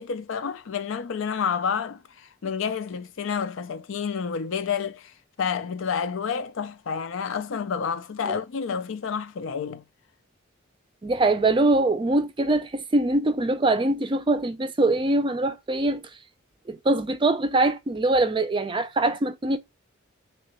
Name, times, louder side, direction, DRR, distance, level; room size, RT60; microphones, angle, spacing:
voice 1, 0.0-9.8, left 6 dB, 70° left, 0.4 m, -29 dB
voice 2, 11.0-16.0 16.7-19.6, right 2 dB, 25° right, 0.4 m, -23 dB
3.2 x 2.9 x 2.9 m
head